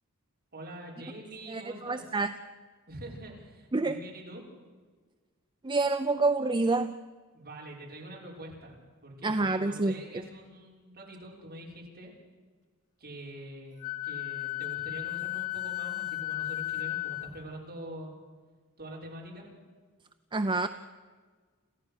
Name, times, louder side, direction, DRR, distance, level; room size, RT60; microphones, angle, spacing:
voice 1, 0.5-2.0 2.9-4.4 7.3-12.1 13.0-18.2 18.8-19.5, right 1 dB, 45° right, -2 dB, 5.9 m, -45 dB
voice 2, 1.5-2.3 3.7-4.0 5.6-6.9 9.2-9.9 20.3-20.7, right 3 dB, 20° right, 9 dB, 0.6 m, -27 dB
Wind instrument woodwind instrument, 13.8-17.3, left 18 dB, 80° left, 2.4 m, -34 dB
28.0 x 15.0 x 6.6 m, 1.5 s
head